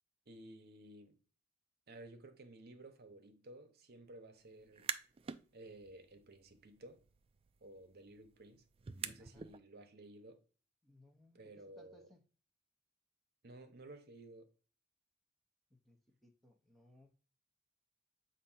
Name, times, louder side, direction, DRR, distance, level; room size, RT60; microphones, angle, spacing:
voice 1, 0.3-1.2 1.9-4.9 5.5-7.0 7.6-8.6 9.0-10.4 11.3-12.1 13.4-14.5, right 1 dB, 55° right, 1.0 m, -55 dB
sound 1, 4.6-5.4 5.8-9.6, right 7 dB, 30° right, 0.4 m, -47 dB
voice 2, 10.8-12.2 15.7-17.1, left 1 dB, ahead, 0.8 m, -65 dB
7.6 x 2.7 x 5.6 m
head